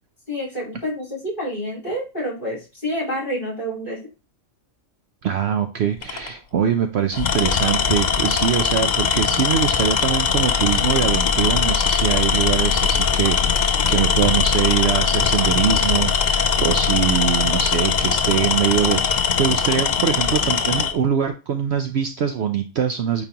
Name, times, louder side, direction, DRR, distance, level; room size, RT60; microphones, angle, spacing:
voice 1, 0.3-4.0, equal, 40° left, -6 dB, 4.6 m, -28 dB
voice 2, 5.2-23.2, right 8 dB, 60° right, 7 dB, 0.8 m, -23 dB
Tools, 6.0-6.3 7.1-20.9, left 6 dB, 55° left, 0.5 m, -20 dB
8.8 x 4.1 x 2.9 m, 0.29 s
omnidirectional pair, 1.4 m